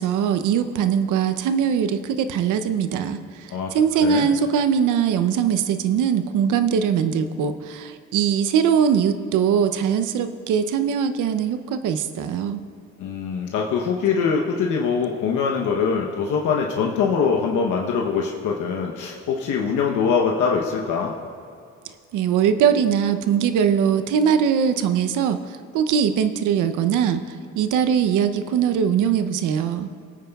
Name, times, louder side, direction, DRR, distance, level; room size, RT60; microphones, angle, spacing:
voice 1, 0.0-12.6 22.1-27.2 27.6-29.9, right 7 dB, 85° right, 10 dB, 0.6 m, -21 dB
voice 2, 4.0-4.3 13.0-21.1, left 6 dB, 80° left, -1 dB, 0.9 m, -23 dB
20.5 x 8.9 x 2.3 m, 2.4 s
cardioid pair, 90°, 30 cm